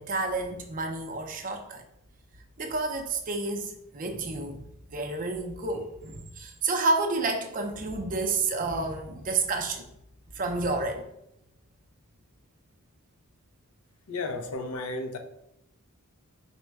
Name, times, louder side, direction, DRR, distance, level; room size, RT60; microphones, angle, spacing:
voice 1, 0.0-1.8 2.6-9.8 10.3-11.1, right 3 dB, 40° right, 4 dB, 0.5 m, -30 dB
voice 2, 14.1-15.2, left 2 dB, 85° left, 6 dB, 0.6 m, -33 dB
4.2 x 2.1 x 4.6 m, 0.81 s
head